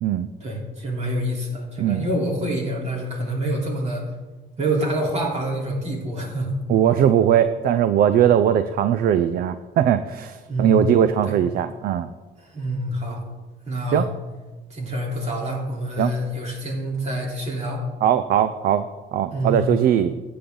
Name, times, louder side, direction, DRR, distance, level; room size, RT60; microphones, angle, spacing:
voice 1, 0.4-4.0 4.6-6.6 10.5-10.8 11.3-11.4 12.4-13.2 13.7-14.1 14.7-17.9 19.3-19.6, right 1 dB, 40° right, -1 dB, 3.6 m, -26 dB
voice 2, 6.7-12.1 13.9-14.0 16.0-16.1 18.0-20.1, right 9 dB, 60° right, 12 dB, 0.6 m, -20 dB
14.5 x 8.6 x 3.9 m, 1.3 s
cardioid pair, 110°, 17 cm